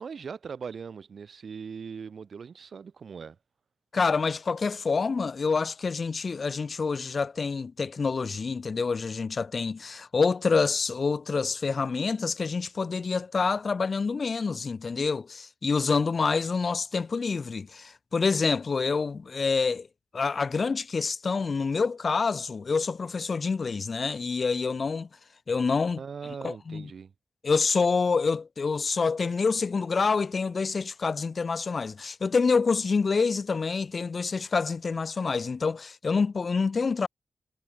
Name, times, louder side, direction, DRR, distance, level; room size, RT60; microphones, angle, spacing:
voice 1, 0.0-3.4 26.0-27.1, right 6 dB, 75° right, 1.3 m, -40 dB
voice 2, 3.9-19.9 20.1-25.1 25.5-26.0 26.4-26.9 27.4-37.1, left 4 dB, 55° left, 0.5 m, -27 dB
wide cardioid pair, 100°, 0 cm